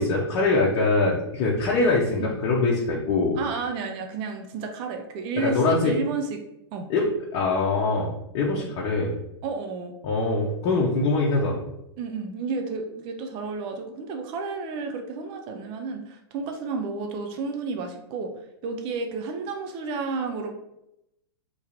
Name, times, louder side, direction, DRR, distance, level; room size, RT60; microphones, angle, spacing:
voice 1, 0.0-3.4 5.4-6.0 6.9-9.1 10.0-11.6, left 3 dB, 40° left, -3 dB, 0.8 m, -23 dB
voice 2, 3.4-6.3 6.7-6.9 8.5-8.8 9.4-9.9 12.0-18.3 18.6-20.5, right 4 dB, 40° right, 4 dB, 0.6 m, -31 dB
3.0 x 2.8 x 3.8 m, 0.83 s
hypercardioid pair, 105°, 14 cm